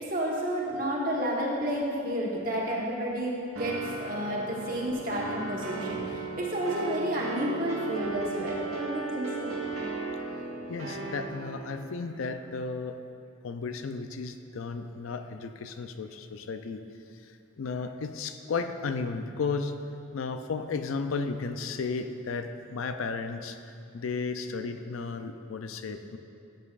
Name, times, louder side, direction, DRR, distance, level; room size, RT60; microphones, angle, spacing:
voice 1, 0.0-9.6, equal, 45° right, -4 dB, 1.2 m, -31 dB
sound 1, 3.6-11.8, right 4 dB, 90° right, 1.2 m, -36 dB
voice 2, 10.7-13.0 13.4-16.8 17.2-19.7 20.1-23.6 23.9-26.2, left 4 dB, 80° left, 8 dB, 0.5 m, -34 dB
12.5 x 7.3 x 2.5 m, 2.6 s
head